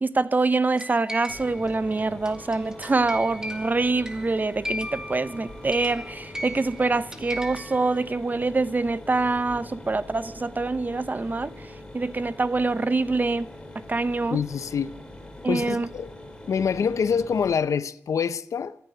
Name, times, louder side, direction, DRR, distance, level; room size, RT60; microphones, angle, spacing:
voice 1, 0.0-11.5 11.9-13.5 13.9-14.4 15.4-15.9, right 3 dB, 35° right, 0.8 m, -25 dB
sound 1, 0.8-8.0, equal, 10° right, 2.3 m, -37 dB
Mechanisms, 1.3-17.5, left 1 dB, 15° left, 4.1 m, -43 dB
voice 2, 14.3-15.0 15.5-16.1 16.5-18.8, left 6 dB, 80° left, 0.7 m, -25 dB
15.0 x 10.5 x 9.3 m
cardioid pair, 65°, 5 cm